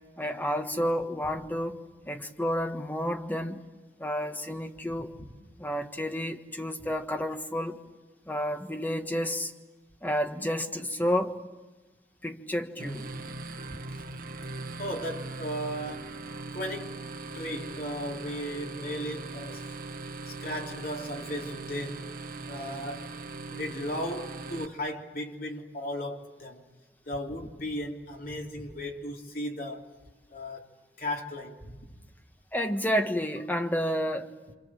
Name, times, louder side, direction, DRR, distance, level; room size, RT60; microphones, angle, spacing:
voice 1, 0.2-1.8 2.1-3.6 4.0-5.1 5.6-7.8 8.3-9.5 10.0-11.4 12.2-13.1 32.5-34.3, equal, 10° left, 1.4 m, -30 dB
sound 1, 12.8-24.7, right 3 dB, 50° right, 1.3 m, -40 dB
voice 2, 14.7-16.1 16.5-17.0 17.3-19.7 20.3-22.1 22.5-23.1 23.5-26.6 27.1-29.9 30.3-31.7, equal, 55° left, 3.4 m, -36 dB
28.0 x 27.0 x 7.6 m
head